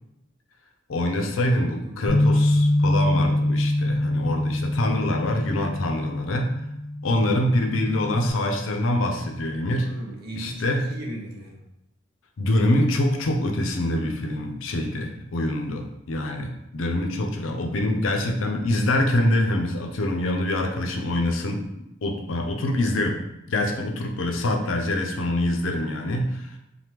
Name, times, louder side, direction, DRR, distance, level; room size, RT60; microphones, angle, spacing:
voice 1, 0.9-6.5 7.0-9.9 10.3-10.9 12.4-23.2 23.5-26.6, left 1 dB, 80° left, 3 dB, 0.5 m, -25 dB
voice 2, 1.5-2.0 9.8-11.5 16.8-17.0, right 1 dB, 55° right, -1 dB, 0.7 m, -37 dB
Bass guitar, 2.1-8.3, left 1 dB, 20° left, 0.9 m, -24 dB
3.3 x 2.1 x 2.9 m, 0.86 s
head